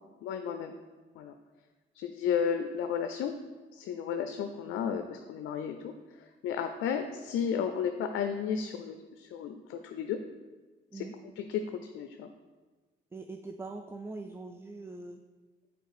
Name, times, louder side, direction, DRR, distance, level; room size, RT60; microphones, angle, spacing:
voice 1, 0.2-0.7 1.2-1.3 1.9-3.3 3.7-5.9 6.4-10.2 10.9-11.1 11.4-12.3, left 7 dB, 85° left, 7 dB, 0.4 m, -33 dB
voice 2, 13.1-15.2, right 3 dB, 10° right, 6 dB, 0.3 m, -42 dB
6.7 x 4.3 x 4.8 m, 1.3 s
cardioid pair, 90°, 20 cm